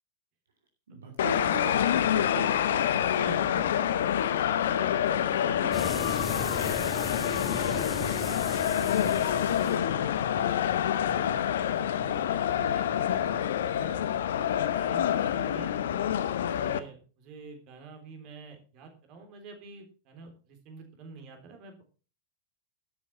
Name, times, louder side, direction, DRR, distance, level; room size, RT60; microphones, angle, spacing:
voice 1, 0.9-3.1, right 2 dB, 65° right, 2 dB, 2.7 m, -39 dB
sound 1, 1.2-16.8, left 10 dB, 60° left, 0.9 m, -27 dB
voice 2, 3.0-4.9 5.3-6.9 7.3-8.1 8.7-9.2 9.5-10.0 10.5-10.7 11.1-11.4 11.7-14.0 14.7-15.7 16.6-21.8, right 4 dB, 40° right, 5 dB, 3.7 m, -47 dB
sound 2, 5.7-12.2, left 2 dB, 10° left, 2.3 m, -38 dB
12.5 x 8.2 x 5.8 m, 0.36 s
figure-of-eight pair, 90°, 0 cm